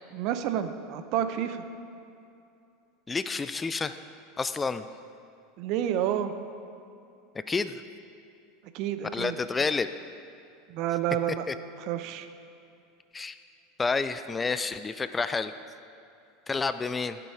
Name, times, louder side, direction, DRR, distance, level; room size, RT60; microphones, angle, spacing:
voice 1, 0.1-1.6 5.6-6.3 8.7-9.3 10.7-11.5 11.8-12.3, right 10 dB, 55° right, 10 dB, 0.6 m, -29 dB
voice 2, 3.1-4.0 4.4-4.8 7.5-7.8 9.1-9.9 11.5-11.6 13.1-13.4 13.8-15.5 16.5-17.2, left 4 dB, 20° left, 12 dB, 0.3 m, -29 dB
12.0 x 6.9 x 4.8 m, 2.6 s
figure-of-eight pair, 80°, 0 cm